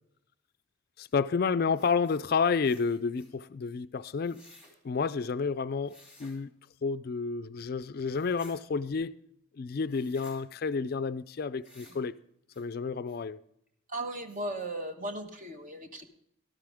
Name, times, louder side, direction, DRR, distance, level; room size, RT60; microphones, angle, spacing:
voice 1, 1.0-4.4 4.8-6.5 6.8-9.2 9.6-12.1 12.6-13.4, left 5 dB, 45° left, 0.3 m, -30 dB
sound 1, 1.7-2.3 2.6-3.3 4.2-4.7 5.9-6.4 8.0-8.6 9.9-10.4 11.6-12.0 12.5-12.6 13.1-13.2 13.7-13.8 14.1-14.7, left 2 dB, 5° right, 3.0 m, -56 dB
voice 2, 13.9-16.1, right 1 dB, 40° right, 1.2 m, -37 dB
13.0 x 12.5 x 3.5 m
head